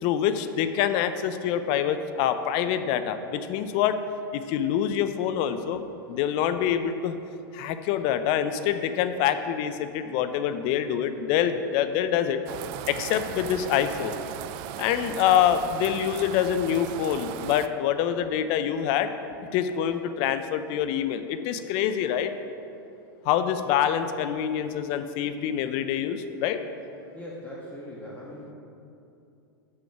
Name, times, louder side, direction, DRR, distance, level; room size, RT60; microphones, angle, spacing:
voice 1, 0.0-4.0 4.3-7.2 7.5-12.4 12.9-14.1 14.8-19.1 19.5-22.3 23.2-26.6, left 9 dB, 45° left, 10 dB, 0.5 m, -26 dB
sound 1, 12.5-17.7, right 11 dB, 45° right, 0.4 m, -37 dB
voice 2, 27.1-28.5, left 1 dB, 10° left, -6 dB, 1.5 m, -40 dB
7.0 x 6.3 x 5.9 m, 2.7 s
hypercardioid pair, 110°, 12 cm